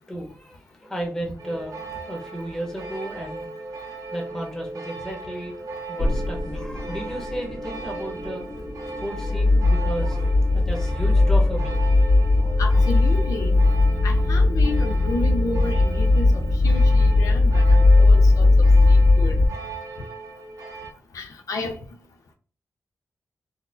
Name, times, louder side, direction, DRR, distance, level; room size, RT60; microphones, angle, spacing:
voice 1, 0.1-3.5 4.1-5.5 5.9-8.4 9.0-12.0, right 1 dB, 10° left, 1.0 m, -34 dB
sound 1, 1.4-20.9, right 3 dB, 85° right, 0.6 m, -37 dB
sound 2, 6.0-19.5, left 2 dB, 50° left, 1.4 m, -19 dB
voice 2, 12.6-13.6 14.0-18.5 18.9-19.4 21.1-21.8, left 3 dB, 80° left, 0.4 m, -32 dB
3.9 x 2.1 x 2.6 m
cardioid pair, 70°, 6 cm